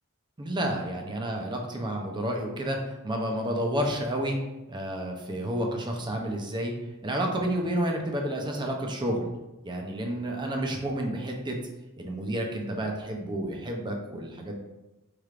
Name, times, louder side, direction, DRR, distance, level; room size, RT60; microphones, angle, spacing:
voice 1, 0.4-4.4 4.7-6.7 7.0-9.3 9.6-11.6 12.0-14.6, right 1 dB, 20° right, 1 dB, 0.5 m, -30 dB
4.4 x 3.3 x 2.4 m, 1.0 s
head